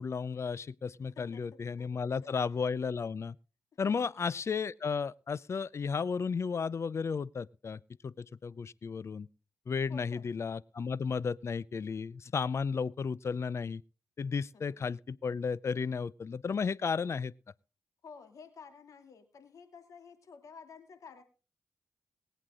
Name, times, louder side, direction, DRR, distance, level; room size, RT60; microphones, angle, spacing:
voice 1, 0.0-3.4 3.8-9.3 9.7-13.8 14.2-17.3, left 5 dB, 55° left, 0.6 m, -34 dB
voice 2, 1.2-1.5 1.8-2.3 3.9-4.2 9.9-10.3 14.5-14.8 18.0-21.2, left 5 dB, 75° left, 2.6 m, -52 dB
23.0 x 8.1 x 3.7 m
supercardioid pair, 45°, 6 cm